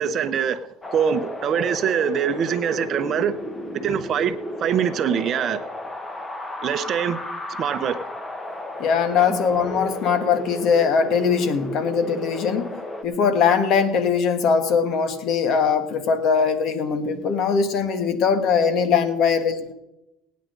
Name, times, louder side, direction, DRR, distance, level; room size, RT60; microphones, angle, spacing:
voice 1, 0.0-3.4 3.8-5.6 6.6-7.2 7.6-8.0 9.2-9.4, right 8 dB, 45° right, 0.8 m, -24 dB
Wind, 0.8-13.0, left 1 dB, 20° left, 1.2 m, -34 dB
voice 2, 8.8-12.7 13.0-19.7, left 6 dB, 55° left, 1.5 m, -21 dB
18.0 x 9.4 x 3.9 m
cardioid pair, 125°, 0 cm